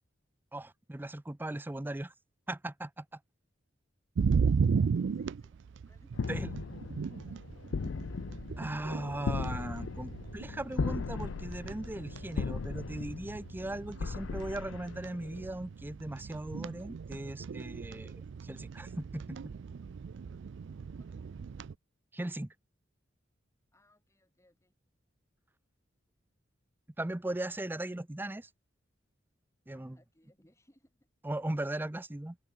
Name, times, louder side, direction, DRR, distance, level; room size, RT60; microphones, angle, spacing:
voice 1, 0.5-2.1 2.5-3.2 6.3-6.5 8.6-18.1 18.4-19.4 22.1-22.5 27.0-28.5 29.7-30.0 31.2-32.4, right 1 dB, 10° right, 0.5 m, -38 dB
sound 1, 4.1-21.7, right 5 dB, 70° right, 0.4 m, -36 dB
voice 2, 4.7-5.6 5.9-6.8 7.0-7.9 20.9-21.4 23.7-24.7 29.7-31.1, left 1 dB, 15° left, 6.3 m, -67 dB
sound 2, 6.1-15.4, left 4 dB, 80° left, 0.5 m, -38 dB
head